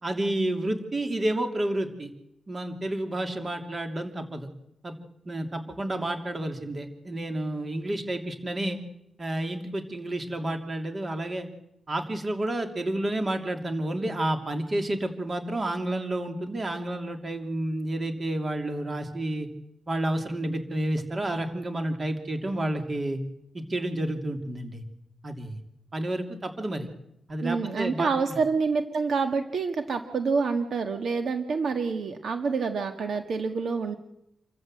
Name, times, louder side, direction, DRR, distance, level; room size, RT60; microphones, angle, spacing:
voice 1, 0.0-2.1 2.5-4.5 4.8-4.9 5.3-8.8 9.2-11.5 11.9-19.5 19.9-23.2 23.5-24.8 25.2-25.6 25.9-26.9 27.3-28.1, right 1 dB, 35° right, 5 dB, 3.0 m, -30 dB
voice 2, 27.4-34.0, right 4 dB, 65° right, 6 dB, 1.8 m, -27 dB
28.0 x 14.5 x 7.8 m, 0.80 s
cardioid pair, 95°, 0 cm